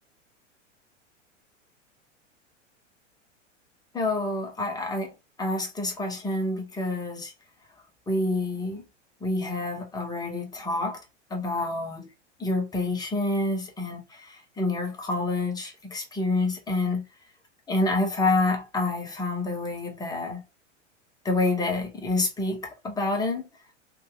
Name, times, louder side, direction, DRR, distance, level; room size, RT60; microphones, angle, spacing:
voice 1, 3.9-5.1 5.4-7.3 8.1-8.8 9.2-11.0 11.3-12.1 12.4-17.0 17.7-20.4 21.2-23.4, left 2 dB, 10° left, 0.9 m, -28 dB
2.6 x 2.3 x 3.6 m
figure-of-eight pair, 90°, 37 cm